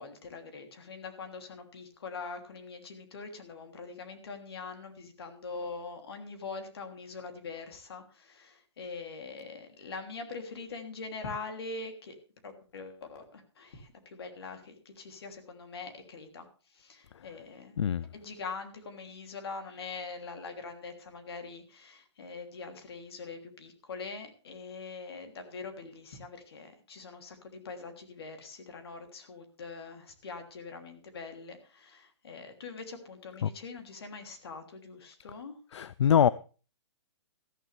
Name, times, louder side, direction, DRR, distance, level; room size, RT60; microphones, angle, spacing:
voice 1, 0.0-12.2 12.4-16.5 16.7-17.8 18.1-35.5, left 4 dB, 60° left, 3.1 m, -43 dB
voice 2, 35.7-36.3, left 8 dB, 80° left, 0.5 m, -23 dB
14.0 x 13.5 x 3.4 m
hypercardioid pair, 170°, 15 cm